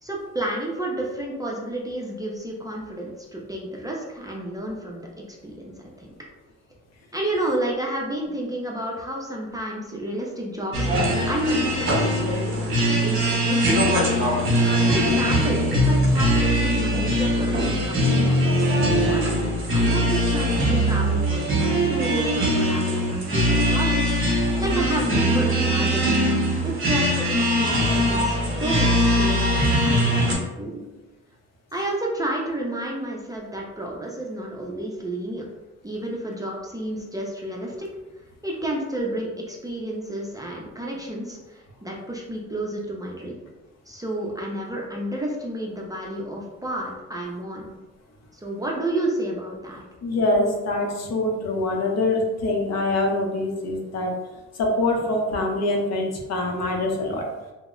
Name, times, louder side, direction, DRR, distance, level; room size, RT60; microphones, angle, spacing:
voice 1, 0.0-5.1 5.4-6.1 7.1-11.6 12.0-14.1 14.9-26.1 26.6-30.9 31.7-35.4 35.8-37.9 38.4-43.4 43.9-47.7 48.3-49.8, right 1 dB, 10° right, -3 dB, 0.4 m, -31 dB
sound 1, 10.7-30.3, equal, 40° right, 0.9 m, -21 dB
voice 2, 50.0-54.1 54.6-57.2, left 2 dB, 60° left, 1 dB, 0.7 m, -24 dB
2.0 x 2.0 x 3.6 m, 1.1 s
cardioid pair, 90°, 30 cm